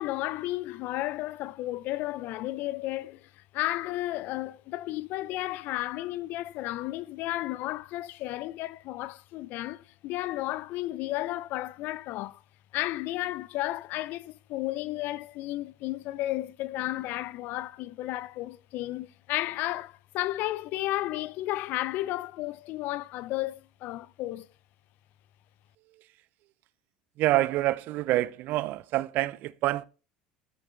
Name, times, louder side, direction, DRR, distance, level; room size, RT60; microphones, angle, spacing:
voice 1, 0.0-12.4 12.7-24.5, left 16 dB, 60° left, 0.6 m, -33 dB
voice 2, 27.2-29.8, right 16 dB, 55° right, 0.5 m, -27 dB
13.5 x 6.7 x 4.3 m
hypercardioid pair, 70°, 4 cm